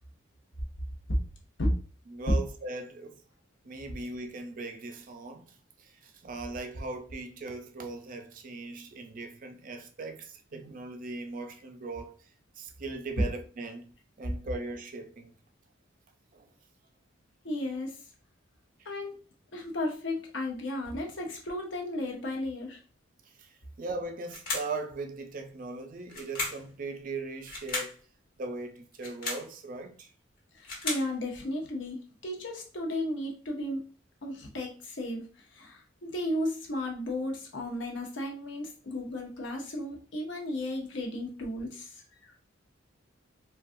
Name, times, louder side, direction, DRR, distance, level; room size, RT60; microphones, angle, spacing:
voice 1, 2.1-3.2 3.6-12.2 12.6-13.9 14.2-15.3 16.3-16.5 23.4-28.0 28.4-30.1, right 3 dB, 40° right, 0.4 m, -39 dB
voice 2, 17.4-18.0 18.8-19.1 19.5-22.8 30.5-33.9 34.2-35.3 35.5-42.0, left 1 dB, 65° left, 0.9 m, -34 dB
sound 1, 24.3-24.8 26.1-26.7 27.5-28.0 28.9-29.5 30.4-31.1, left 3 dB, 45° left, 1.1 m, -35 dB
3.9 x 2.3 x 2.6 m
head